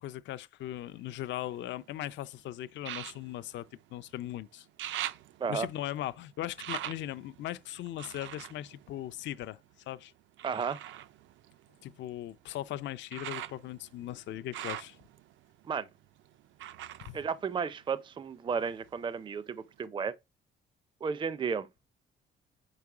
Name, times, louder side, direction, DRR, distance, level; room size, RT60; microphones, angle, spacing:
voice 1, 0.0-3.7 3.9-4.7 5.5-9.6 9.9-10.1 11.8-15.0 17.0-17.2, left 13 dB, 65° left, 0.4 m, -39 dB
sound 1, 0.6-2.0 2.8-4.3 4.6-9.7 10.4-18.2 18.5-19.4 19.8-19.9, right 12 dB, 75° right, 0.5 m, -44 dB
voice 2, 10.4-10.8 15.6-15.9 17.1-20.1 21.0-21.7, right 6 dB, 25° right, 0.4 m, -33 dB
5.1 x 4.8 x 4.8 m
cardioid pair, 90°, 20 cm